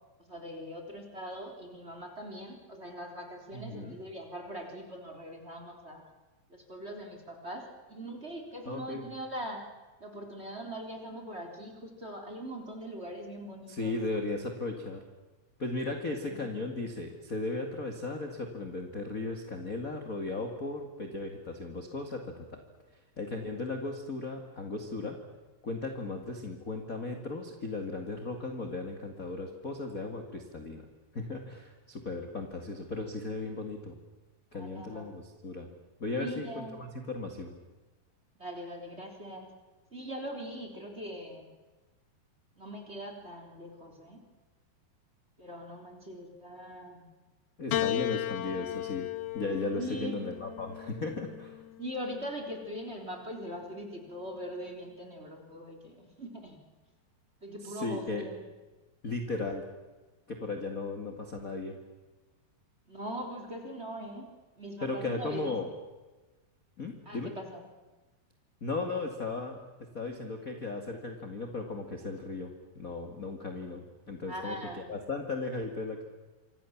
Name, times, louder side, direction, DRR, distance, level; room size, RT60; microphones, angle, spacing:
voice 1, 0.3-6.0 6.5-9.6 10.0-14.0 16.2-16.5 34.5-35.2 36.2-36.8 38.4-39.5 39.9-41.5 42.5-44.2 45.4-47.1 49.7-50.2 51.8-56.6 57.4-58.4 62.9-65.5 67.0-67.6 74.3-74.8, equal, 15° right, 3 dB, 3.4 m, -41 dB
voice 2, 3.5-3.9 8.6-9.1 13.7-15.0 15.6-22.6 23.2-25.2 25.6-30.8 31.1-34.0 34.5-35.7 36.0-37.6 47.6-49.1 49.3-51.6 57.6-58.2 59.0-59.6 60.3-61.8 64.8-65.7 66.8-67.3 68.6-69.6 69.9-76.0, left 3 dB, 30° left, 4 dB, 1.6 m, -36 dB
Piano, 47.7-52.2 53.2-54.0, left 14 dB, 85° left, 1.7 m, -36 dB
27.5 x 26.5 x 7.3 m, 1.2 s
omnidirectional pair, 5.0 m